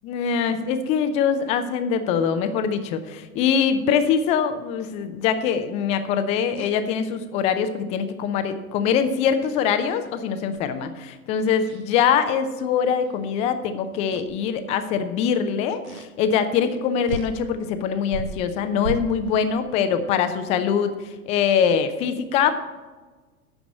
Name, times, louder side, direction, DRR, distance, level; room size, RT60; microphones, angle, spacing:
voice 1, 0.0-22.5, left 7 dB, 15° left, 10 dB, 0.4 m, -23 dB
sound 1, 6.6-6.8 9.4-10.1 10.5-10.8 11.6-11.9 13.1-13.2 14.1-14.4 15.8-16.1 16.7-16.8 17.1-17.4 18.0-19.4, right 4 dB, 65° right, 0.9 m, -35 dB
8.7 x 6.0 x 8.1 m, 1.3 s
figure-of-eight pair, 100°, 45 cm